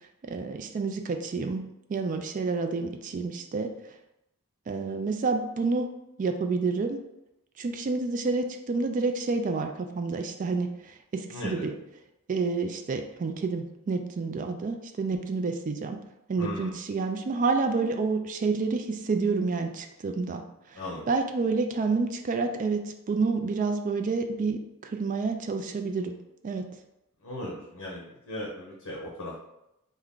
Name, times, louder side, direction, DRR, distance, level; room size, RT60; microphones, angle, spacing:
voice 1, 0.2-1.6 1.9-3.7 4.7-5.9 6.2-7.0 7.6-11.7 12.3-16.0 16.3-20.4 20.7-20.8 21.1-26.1 26.4-26.6, right 4 dB, 35° right, 6 dB, 0.3 m, -29 dB
voice 2, 11.3-11.7 16.4-16.8 20.7-21.0 27.2-29.4, left 1 dB, 85° left, -4 dB, 0.8 m, -37 dB
3.4 x 2.2 x 3.7 m, 0.87 s
head